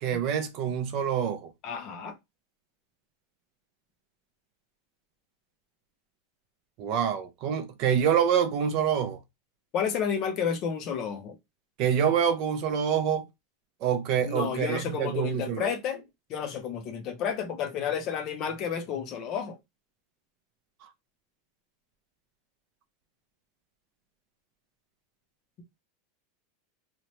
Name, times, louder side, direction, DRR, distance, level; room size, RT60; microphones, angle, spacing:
voice 1, 0.0-1.5 6.8-9.2 11.8-13.2 13.8-15.7, right 8 dB, 35° right, 0.4 m, -26 dB
voice 2, 1.6-2.2 9.7-11.4 14.3-16.0 16.3-19.6, left 7 dB, 30° left, 0.4 m, -31 dB
2.9 x 2.1 x 2.8 m
supercardioid pair, 180°, 0 cm